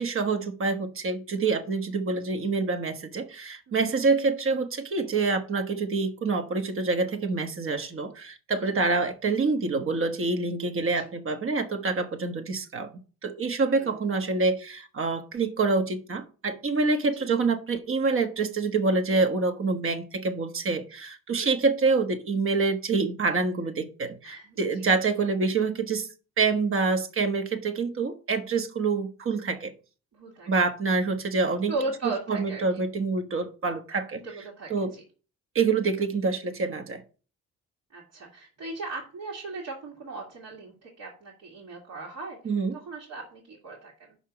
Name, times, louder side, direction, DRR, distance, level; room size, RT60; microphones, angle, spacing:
voice 1, 0.0-12.9 13.2-26.1 26.4-29.7 30.5-31.7 32.3-34.2 34.7-34.9 35.5-37.0 42.4-42.8, right 4 dB, 45° right, 1.3 m, -26 dB
voice 2, 13.6-14.0 21.4-21.5 24.2-24.9 30.1-30.5 31.7-32.8 34.2-35.0 37.9-42.4 42.7-44.2, right 3 dB, 65° right, 2.3 m, -37 dB
5.8 x 5.8 x 6.0 m
cardioid pair, 90°, 30 cm